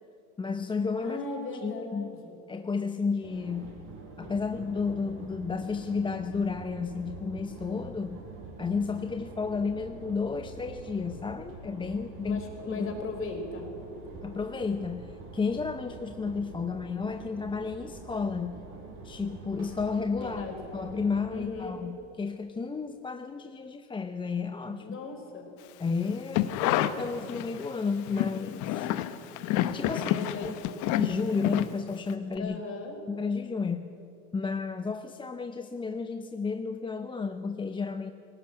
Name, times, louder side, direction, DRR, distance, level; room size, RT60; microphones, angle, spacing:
voice 1, 0.4-1.2 1.6-2.1 2.5-3.8 4.2-8.2 8.6-12.4 12.7-12.9 14.2-18.7 19.0-20.5 20.7-25.0 25.8-28.9 29.7-30.2 30.4-30.6 31.0-32.6 33.1-34.0 34.3-38.1, left 5 dB, 15° left, 8 dB, 0.7 m, -32 dB
voice 2, 1.0-2.4 12.2-13.6 20.2-20.6 21.3-21.8 24.8-25.5 29.9-30.5 32.4-33.0, left 3 dB, 40° left, 3 dB, 4.6 m, -38 dB
sound 1, 3.2-21.5, right 4 dB, 65° right, 5.4 m, -45 dB
sound 2, 26.1-27.7 28.0-32.1 32.4-32.5, left 13 dB, 60° left, 1.1 m, -29 dB
19.0 x 17.0 x 8.8 m, 2.8 s
supercardioid pair, 105°, 34 cm